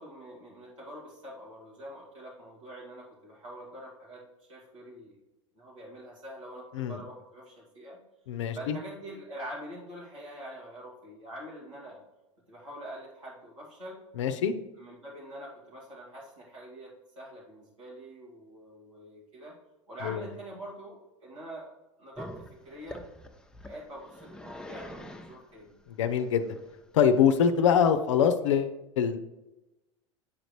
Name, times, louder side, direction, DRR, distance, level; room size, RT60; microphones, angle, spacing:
voice 1, 0.0-4.2 4.5-5.2 5.6-8.0 8.5-12.0 12.5-14.0 14.8-19.5 19.9-21.7 22.0-23.1 23.6-25.7, right 1 dB, 90° right, -7 dB, 1.8 m, -45 dB
voice 2, 8.3-8.8 14.2-14.5 20.0-20.2 25.9-26.5 26.9-29.2, left 7 dB, 70° left, 9 dB, 0.5 m, -24 dB
Growling, 22.2-28.0, equal, 5° left, 0.6 m, -46 dB
8.6 x 5.1 x 3.1 m, 1.0 s
hypercardioid pair, 80°, 16 cm